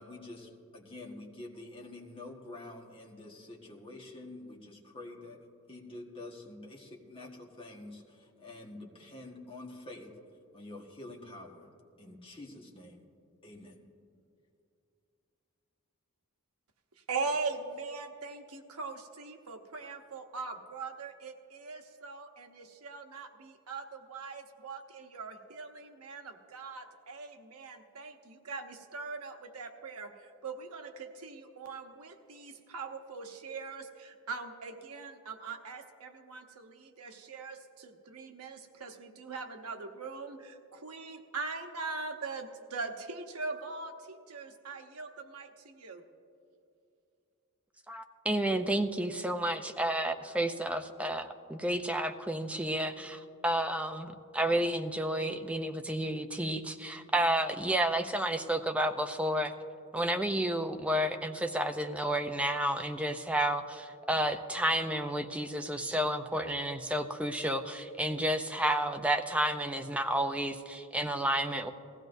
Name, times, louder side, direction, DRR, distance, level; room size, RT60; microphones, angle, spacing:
voice 1, 0.0-5.4 5.7-10.1 10.5-11.7 12.0-13.0 13.4-13.8, left 2 dB, 25° left, -1 dB, 1.6 m, -47 dB
voice 2, 17.1-46.0, right 4 dB, 90° right, 5 dB, 1.0 m, -41 dB
voice 3, 47.9-59.5 59.9-71.7, right 1 dB, 5° right, 6 dB, 0.5 m, -31 dB
19.5 x 15.5 x 2.7 m, 2.6 s
head